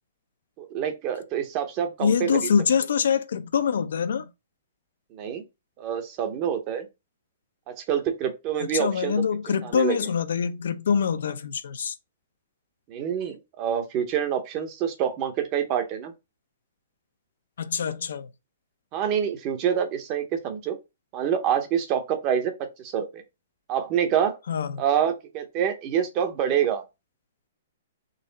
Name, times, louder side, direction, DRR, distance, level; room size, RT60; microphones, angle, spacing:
voice 1, 0.6-2.5 5.1-5.4 5.8-6.9 7.7-9.2 9.6-10.1 12.9-16.1 18.9-20.8 21.1-23.2 23.7-24.4 24.8-26.8, right 9 dB, 30° right, 0.8 m, -26 dB
voice 2, 2.0-4.3 8.7-11.9 17.6-18.3 24.5-24.8, left 7 dB, 75° left, 0.6 m, -25 dB
4.0 x 3.1 x 4.0 m
hypercardioid pair, 160°, 0 cm